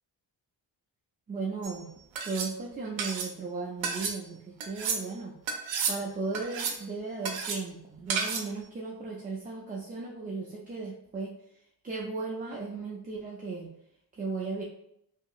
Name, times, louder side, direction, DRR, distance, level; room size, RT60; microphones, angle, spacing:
voice 1, 1.3-1.9 2.2-5.3 5.9-11.3 11.8-13.7 14.2-14.6, right 4 dB, 20° right, -3 dB, 0.4 m, -36 dB
sound 1, 1.6-1.8 2.1-2.5 3.0-3.3 3.8-4.2 4.6-5.0 5.5-6.0 6.3-6.8 7.2-7.6 8.1-8.5, right 5 dB, 85° right, 0.6 m, -31 dB
2.8 x 2.7 x 2.4 m, 0.76 s
cardioid pair, 85°, 44 cm